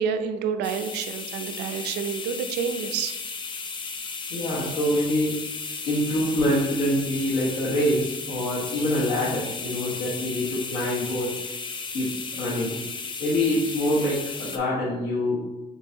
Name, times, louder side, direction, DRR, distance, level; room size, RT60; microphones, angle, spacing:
voice 1, 0.0-3.1, right 7 dB, 80° right, 8 dB, 0.4 m, -28 dB
sound 1, 0.6-14.6, left 4 dB, 30° left, 0.5 m, -35 dB
voice 2, 4.3-5.4 5.9-11.3 11.9-12.8 13.2-15.4, left 1 dB, 80° left, -7 dB, 1.1 m, -25 dB
4.6 x 3.9 x 2.6 m, 1.0 s
cardioid pair, 110°, 17 cm